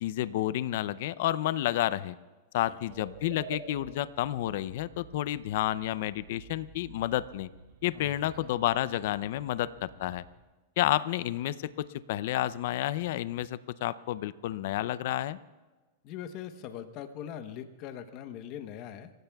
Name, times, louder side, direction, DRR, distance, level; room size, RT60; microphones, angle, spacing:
voice 1, 0.0-2.2 2.5-7.5 7.8-10.2 10.8-15.4, left 13 dB, 65° left, 17 dB, 0.5 m, -30 dB
sound 1, 2.9-10.4, right 5 dB, 75° right, 6.4 m, -50 dB
voice 2, 7.9-8.5 16.0-19.1, left 9 dB, 45° left, 9 dB, 1.0 m, -42 dB
29.5 x 16.0 x 2.3 m, 1.3 s
supercardioid pair, 135°, 0 cm